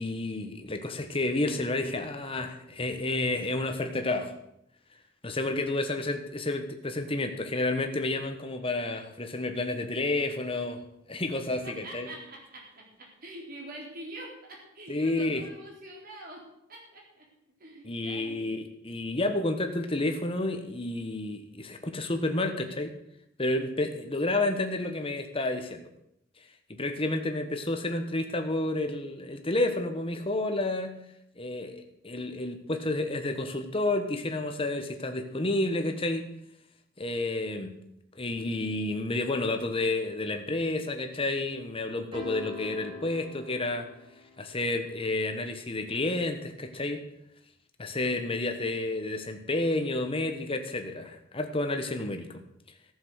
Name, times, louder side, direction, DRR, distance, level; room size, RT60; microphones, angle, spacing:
voice 1, 0.0-4.3 5.2-10.8 11.1-12.1 14.9-15.4 17.8-22.9 23.4-25.9 26.7-31.0 31.4-36.3 37.0-37.8 38.1-43.9 44.4-47.0 47.8-52.4, left 2 dB, 30° left, 6 dB, 1.3 m, -30 dB
voice 2, 11.6-17.3 17.6-18.5, right 1 dB, 50° right, -1 dB, 3.8 m, -45 dB
sound 1, 42.1-44.5, left 3 dB, 25° right, 2.6 m, -43 dB
13.5 x 7.1 x 8.1 m, 0.77 s
head